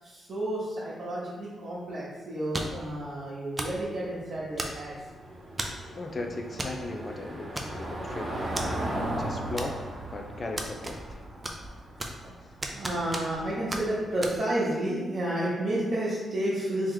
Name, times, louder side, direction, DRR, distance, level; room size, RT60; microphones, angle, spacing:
voice 1, 0.0-5.0 11.3-11.5 12.0-12.3 12.7-16.9, right 1 dB, 60° right, -10 dB, 0.9 m, -31 dB
sound 1, 2.5-2.9 3.6-3.8 4.6-5.0 5.6-5.9 6.6-6.8 7.1-7.2 7.6-8.0 8.6-8.7 9.6-10.0 10.6-11.2 11.4-12.3 12.6-13.4 13.7-13.8 14.2-14.4, right 1 dB, 20° right, 0.5 m, -34 dB
Car passing by / Engine, 3.6-14.2, right 1 dB, 45° right, 1.2 m, -37 dB
voice 2, 6.0-9.8 10.1-11.2, left 2 dB, 40° left, 3 dB, 0.5 m, -37 dB
3.1 x 2.9 x 3.8 m, 1.4 s
cardioid pair, 90°, 0 cm